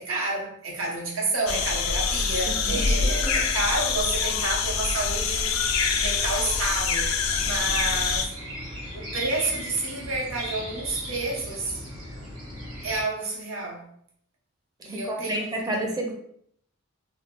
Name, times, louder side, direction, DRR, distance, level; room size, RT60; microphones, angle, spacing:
voice 1, 0.0-5.5 6.0-7.1 7.4-8.3 8.9-11.8 12.8-13.9 14.8-15.7, right 2 dB, 90° right, -2 dB, 0.8 m, -30 dB
sound 1, 1.5-8.3, left 5 dB, 75° left, 0.3 m, -25 dB
voice 2, 2.7-3.5 14.9-16.1, right 1 dB, 20° right, 1 dB, 0.4 m, -31 dB
sound 2, 7.3-13.0, equal, 65° right, 1.0 m, -38 dB
2.2 x 2.0 x 3.5 m, 0.68 s
head